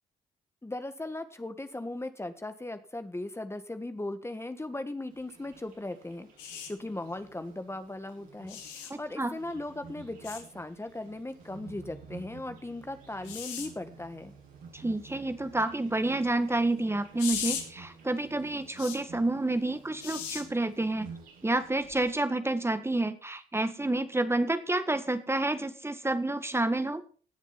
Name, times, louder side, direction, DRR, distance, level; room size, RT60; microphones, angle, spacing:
voice 1, 0.6-6.3 6.7-14.4, left 2 dB, 15° left, 9 dB, 1.5 m, -38 dB
Insect, 5.1-22.1, right 5 dB, 80° right, 7.6 m, -52 dB
sound 1, 6.4-6.7 8.5-8.9 10.2-10.4 13.2-13.7 17.2-17.6 18.8-19.0 20.0-20.4 21.9-22.1, left 8 dB, 85° left, 2.4 m, -36 dB
voice 2, 8.9-9.3 14.7-21.1 21.4-27.0, right 2 dB, 15° right, 10 dB, 1.7 m, -29 dB
18.0 x 7.2 x 5.9 m, 0.42 s
hypercardioid pair, 55°, 17 cm